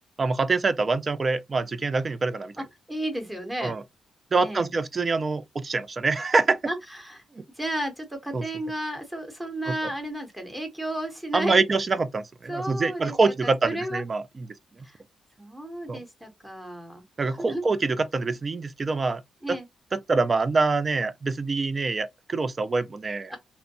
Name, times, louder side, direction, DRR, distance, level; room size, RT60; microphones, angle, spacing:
voice 1, 0.2-2.5 3.6-3.8 4.3-6.6 7.4-7.5 8.3-8.4 9.7-9.8 11.3-14.5 15.9-16.0 17.2-19.2 19.5-19.6 19.9-23.3, right 3 dB, 30° right, 0.3 m, -25 dB
voice 2, 2.9-3.8 4.4-4.7 6.6-7.2 7.6-11.6 12.5-14.0 14.8-15.0 15.4-17.0 17.4-17.6 19.4-19.7 23.3-23.4, right 1 dB, 10° right, 0.9 m, -33 dB
2.6 x 2.1 x 2.7 m
cardioid pair, 120°, 0 cm